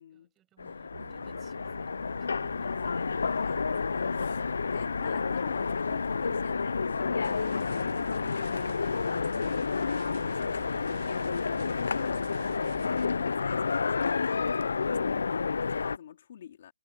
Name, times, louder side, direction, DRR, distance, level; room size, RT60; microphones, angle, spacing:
voice 1, 0.1-1.9 2.2-2.8, right 13 dB, 10° right, 6.6 m, -64 dB
Train, 0.6-16.0, left 5 dB, 80° left, 0.3 m, -30 dB
sound 1, 0.9-14.1, right 6 dB, 60° right, 7.3 m, -51 dB
voice 2, 2.5-14.9 15.3-16.7, left 9 dB, 40° left, 2.3 m, -47 dB
sound 2, 7.2-13.0, right 9 dB, 40° right, 1.5 m, -49 dB
hypercardioid pair, 170°, 0 cm